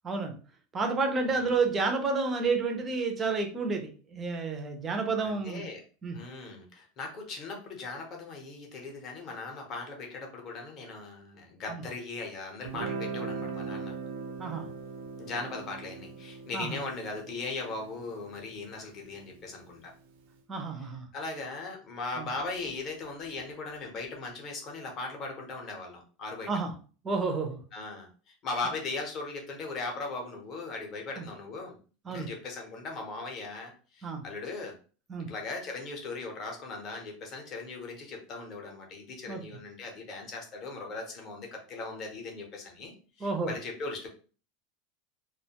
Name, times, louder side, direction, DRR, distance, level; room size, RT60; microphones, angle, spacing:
voice 1, 0.7-5.6 6.0-6.2 11.7-11.8 14.4-14.7 16.5-16.8 20.5-21.1 22.2-22.3 26.5-26.7 27.0-27.6 31.2-31.3 32.1-32.3 34.0-34.2 35.1-35.3 39.3-39.4 43.2-43.5, right 4 dB, 15° right, 4 dB, 0.4 m, -30 dB
voice 2, 1.3-1.6 5.2-5.8 6.1-13.9 15.2-19.9 20.8-20.9 21.1-26.5 27.7-31.8 32.1-34.7 35.3-44.1, left 3 dB, 30° left, 1 dB, 0.6 m, -39 dB
Guitar, 12.6-19.8, right 4 dB, 85° right, 0.5 m, -40 dB
2.4 x 2.1 x 2.7 m, 0.38 s
supercardioid pair, 175°, 0 cm